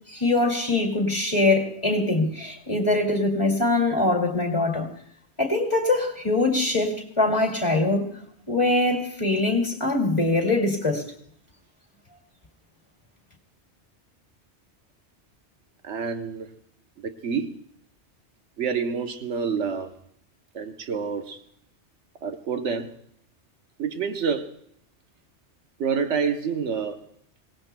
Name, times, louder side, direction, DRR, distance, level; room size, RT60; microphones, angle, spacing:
voice 1, 0.1-4.9 5.4-8.1 8.5-11.1, left 2 dB, 25° left, 2.4 m, -23 dB
voice 2, 15.8-16.5 17.0-17.6 18.6-19.9 20.5-21.4 22.2-23.0 23.8-24.5 25.8-27.0, right 6 dB, 85° right, 1.2 m, -28 dB
25.5 x 18.0 x 2.2 m
omnidirectional pair, 1.2 m